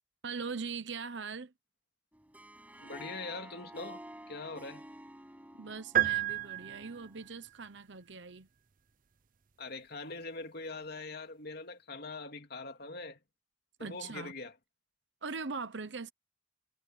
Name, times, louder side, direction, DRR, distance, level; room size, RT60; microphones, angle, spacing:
voice 1, 0.2-1.5 5.6-8.5 13.8-14.3 15.2-16.1, right 4 dB, 70° right, 1.0 m, -41 dB
Harp, 2.1-7.3, right 1 dB, 10° right, 7.1 m, -51 dB
voice 2, 2.8-4.9 9.6-13.2 13.8-14.5, left 3 dB, 55° left, 2.8 m, -43 dB
sound 1, 5.9-7.3, right 13 dB, 45° right, 0.6 m, -30 dB
head